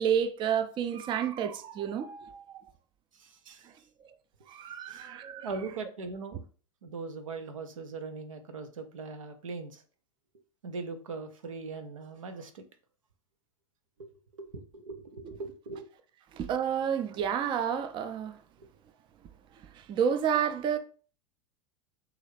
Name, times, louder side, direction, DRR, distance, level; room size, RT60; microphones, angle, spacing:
voice 1, 0.0-2.6 4.5-5.5 16.3-18.3 19.9-20.8, right 8 dB, 30° right, 0.4 m, -30 dB
voice 2, 3.1-3.7 4.9-5.1 5.4-6.4 6.8-9.8 10.6-12.6 14.0-14.1 14.4-15.9 18.6-18.7, right 4 dB, 90° right, 0.5 m, -40 dB
3.1 x 2.4 x 3.2 m
hypercardioid pair, 90°, 16 cm